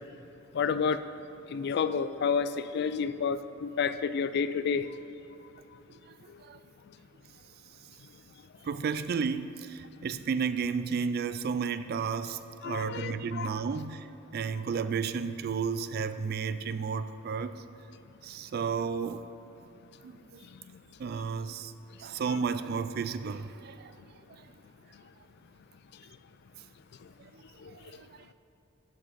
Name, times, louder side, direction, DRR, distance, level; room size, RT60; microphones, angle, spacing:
voice 1, 0.5-1.0 1.5-4.9 12.6-13.5 27.6-27.8, left 6 dB, 55° left, 12 dB, 0.3 m, -30 dB
voice 2, 8.6-14.1 14.3-17.6 18.2-19.3 20.0-20.4 21.0-21.7 22.0-24.0 24.4-24.5 27.2-27.4 27.7-28.2, right 5 dB, 50° right, 13 dB, 0.3 m, -33 dB
12.0 x 6.1 x 4.1 m, 3.0 s
head